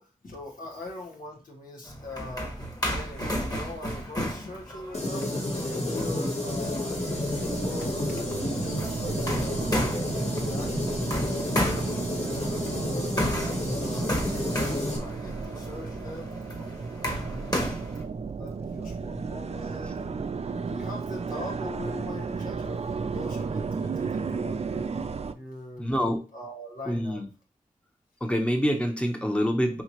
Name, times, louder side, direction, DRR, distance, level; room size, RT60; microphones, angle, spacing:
voice 1, 0.0-2.6 2.9-7.0 7.6-10.1 10.4-13.3 13.8-16.3 17.1-17.9 18.3-25.0 25.3-25.9 26.3-27.2, left 1 dB, 80° left, -1 dB, 1.3 m, -42 dB
sound 1, 1.8-18.0, equal, 25° left, 1.5 m, -34 dB
sound 2, 4.9-15.0, left 1 dB, 50° left, 1.5 m, -30 dB
sound 3, 6.4-25.3, right 5 dB, 50° right, 0.4 m, -34 dB
voice 2, 25.8-26.2 26.9-27.3 28.2-29.8, equal, 10° left, 3 dB, 1.0 m, -26 dB
5.6 x 2.9 x 2.9 m, 0.32 s
cardioid pair, 45°, 14 cm